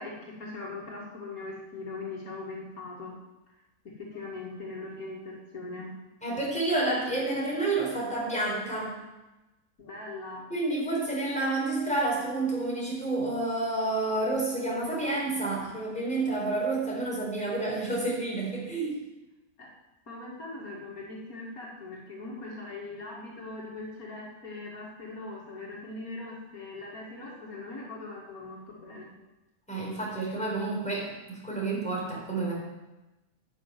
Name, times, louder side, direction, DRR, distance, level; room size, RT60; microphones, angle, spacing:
voice 1, 0.0-3.2 4.0-5.9 9.8-10.5 19.6-19.7 20.1-29.1, left 2 dB, 70° left, -3 dB, 2.7 m, -40 dB
voice 2, 6.2-8.9 10.5-18.9 29.7-32.5, right 2 dB, 5° left, -4 dB, 4.6 m, -29 dB
11.0 x 6.7 x 9.2 m, 1.0 s
omnidirectional pair, 1.6 m